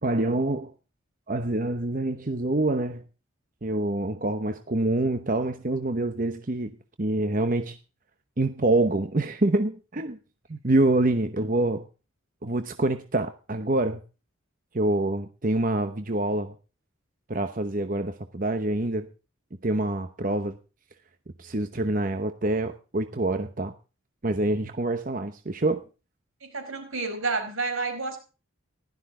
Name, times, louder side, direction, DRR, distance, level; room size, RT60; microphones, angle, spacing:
voice 1, 0.0-0.7 1.3-3.0 3.6-6.7 7.0-7.8 8.4-10.2 10.5-11.9 12.4-14.0 14.7-16.5 17.3-19.1 19.6-20.6 21.4-23.7 24.2-25.8, right 2 dB, 40° right, 0.9 m, -26 dB
voice 2, 26.4-28.2, right 3 dB, 90° right, 4.7 m, -30 dB
16.0 x 12.5 x 3.7 m
head